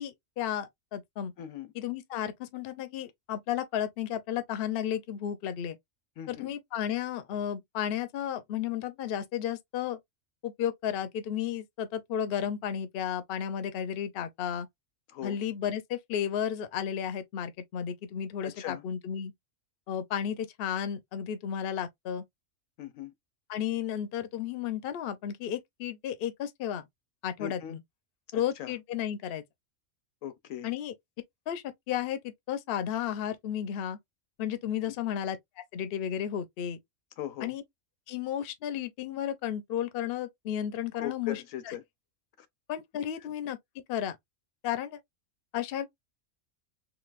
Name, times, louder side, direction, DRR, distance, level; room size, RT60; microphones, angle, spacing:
voice 1, 0.0-1.3 1.7-5.8 6.3-10.0 10.4-14.7 15.2-19.3 19.9-22.2 23.5-26.8 27.2-27.8 28.3-29.4 30.6-30.9 31.5-34.0 34.4-35.4 35.7-36.8 37.4-37.6 38.1-41.4 42.7-43.6 43.9-44.2 44.6-45.0 45.5-45.9, left 9 dB, 60° left, 0.7 m, -33 dB
voice 2, 1.4-1.7 6.2-6.6 15.1-15.4 18.4-18.8 22.8-23.1 27.4-27.8 28.3-28.7 30.2-30.7 34.9-35.0 37.2-37.6 40.9-41.8 42.4-42.5, left 11 dB, 75° left, 1.0 m, -39 dB
3.9 x 2.5 x 2.4 m
omnidirectional pair, 1.4 m